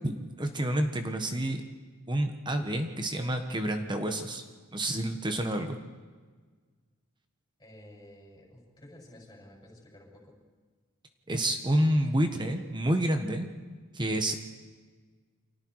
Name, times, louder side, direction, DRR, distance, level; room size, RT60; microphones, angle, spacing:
voice 1, 0.0-1.6 2.1-4.4 4.7-5.8 11.3-13.5 13.9-14.3, right 1 dB, 20° right, 6 dB, 1.4 m, -29 dB
voice 2, 7.6-10.4, left 1 dB, 20° left, -1 dB, 7.2 m, -52 dB
29.5 x 25.0 x 4.8 m, 1.5 s
head